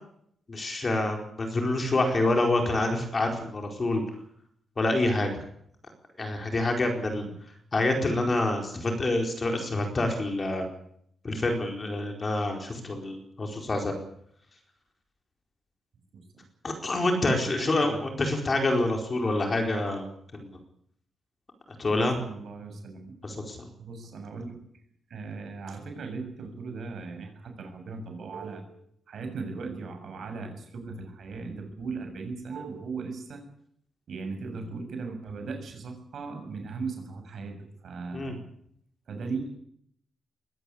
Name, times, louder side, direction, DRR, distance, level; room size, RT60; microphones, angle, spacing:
voice 1, 0.5-4.0 4.8-5.3 6.2-7.2 7.7-10.7 11.2-14.0 16.6-20.1 20.3-20.5 21.8-22.2 23.2-23.6 38.1-38.4, left 2 dB, 25° left, 3 dB, 4.5 m, -27 dB
voice 2, 17.3-18.0 22.2-23.1 23.8-24.5 25.1-28.7 29.1-33.4 34.1-38.4 39.1-39.5, right 4 dB, 55° right, 5 dB, 7.4 m, -38 dB
21.5 x 18.0 x 8.6 m, 0.68 s
wide cardioid pair, 160°, 0 cm